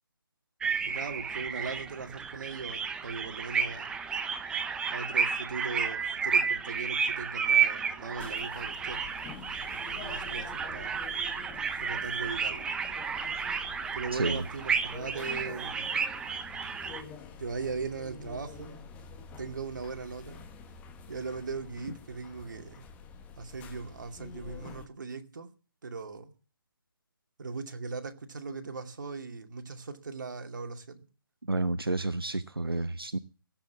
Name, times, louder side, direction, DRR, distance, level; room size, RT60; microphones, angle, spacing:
sound 1, 0.6-17.0, right 6 dB, 5° right, 0.8 m, -32 dB
voice 1, 0.9-4.0 4.9-9.1 9.6-11.0 11.8-12.7 13.9-15.9 17.4-18.9 19.4-20.5 21.1-22.8 23.4-25.5 25.8-26.3 27.4-31.1, right 4 dB, 55° right, 2.4 m, -39 dB
sound 2, 8.2-24.9, left 5 dB, 10° left, 1.2 m, -48 dB
voice 2, 14.1-14.4 31.5-33.2, right 2 dB, 85° right, 0.9 m, -30 dB
17.0 x 8.2 x 7.3 m
figure-of-eight pair, 145°, 12 cm